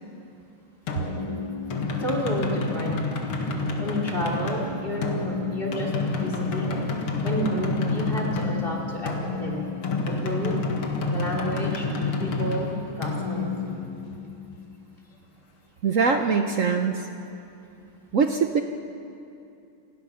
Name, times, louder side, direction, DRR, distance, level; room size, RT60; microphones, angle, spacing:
sound 1, 0.9-14.4, left 3 dB, 80° left, 2.7 m, -29 dB
voice 1, 2.0-3.0 3.8-6.8 7.2-9.7 10.0-10.6 11.0-13.5, equal, 25° left, -2 dB, 3.5 m, -30 dB
voice 2, 15.8-17.0 18.1-18.6, right 5 dB, 65° right, 6 dB, 0.8 m, -22 dB
28.0 x 19.0 x 5.7 m, 2.6 s
omnidirectional pair, 2.4 m